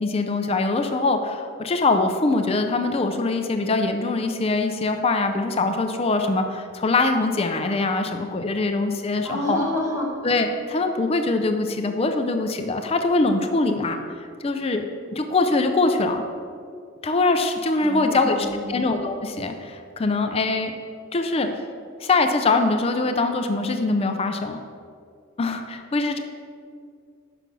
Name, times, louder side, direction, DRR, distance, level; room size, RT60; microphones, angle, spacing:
voice 1, 0.0-9.6 10.2-14.0 14.4-14.8 15.1-16.2 17.0-18.4 18.7-20.7 21.1-21.5 22.0-24.6 25.4-26.2, left 3 dB, 30° left, 6 dB, 0.4 m, -23 dB
voice 2, 9.2-10.1 17.8-18.8, left 1 dB, 15° right, -4 dB, 1.5 m, -28 dB
5.8 x 5.3 x 6.0 m, 2.3 s
head